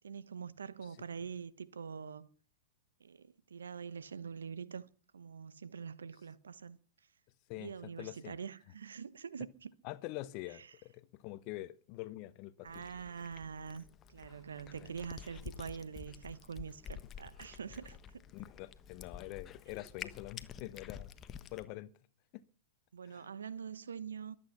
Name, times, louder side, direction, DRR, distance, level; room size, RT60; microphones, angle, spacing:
voice 1, 0.0-2.3 3.0-4.9 5.1-6.8 7.6-9.7 10.6-10.7 12.6-18.2 22.9-24.4, right 6 dB, 80° right, 1.1 m, -45 dB
voice 2, 7.5-8.4 9.8-12.9 14.8-14.9 18.3-21.1 21.5-21.9 22.3-22.4 23.1-23.3, left 17 dB, 45° left, 1.0 m, -45 dB
Cat, 12.7-21.7, left 8 dB, 25° left, 1.2 m, -50 dB
23.0 x 8.7 x 5.8 m
hypercardioid pair, 105°, 0 cm